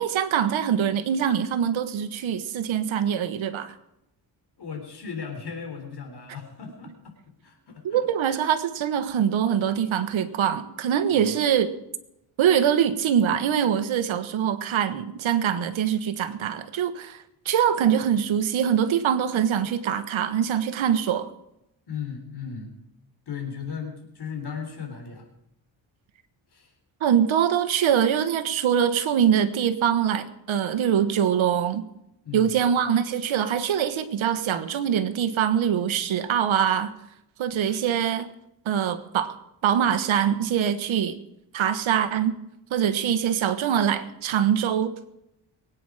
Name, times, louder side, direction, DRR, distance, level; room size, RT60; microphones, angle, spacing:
voice 1, 0.0-3.7 7.8-11.7 12.4-21.3 27.0-31.9 32.3-36.9 37.4-38.3 38.6-39.3 39.6-41.1 41.5-42.3 42.7-44.9, right 9 dB, 80° right, 11 dB, 1.4 m, -23 dB
voice 2, 4.6-7.1 7.4-8.0 11.1-11.3 21.9-22.7 23.3-25.3 26.5-26.7 32.2-32.5, left 6 dB, 55° left, 3 dB, 3.8 m, -36 dB
23.0 x 9.1 x 4.9 m, 0.83 s
cardioid pair, 110°, 47 cm